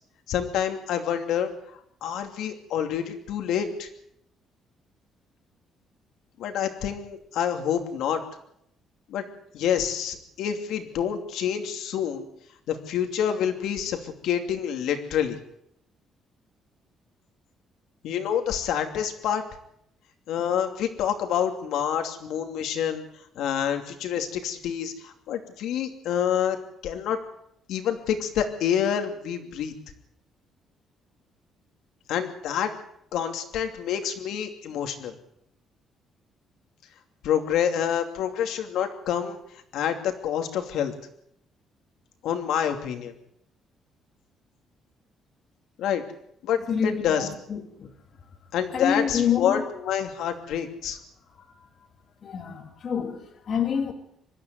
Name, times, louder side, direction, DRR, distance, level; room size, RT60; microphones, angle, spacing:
voice 1, 0.3-3.9 6.4-8.2 9.1-9.2 9.5-12.3 12.7-15.4 18.0-19.4 20.3-23.1 23.3-26.6 26.8-27.2 27.7-29.7 32.1-32.7 33.1-35.1 37.2-39.4 39.7-40.9 42.2-43.1 45.8-46.0 46.4-47.3 48.5-51.0, left 9 dB, 75° left, 2.8 m, -27 dB
voice 2, 46.7-47.9 48.7-49.6 51.4-51.5 52.2-53.9, left 7 dB, 40° left, 2.4 m, -27 dB
25.0 x 13.0 x 9.5 m
cardioid pair, 175°, 0 cm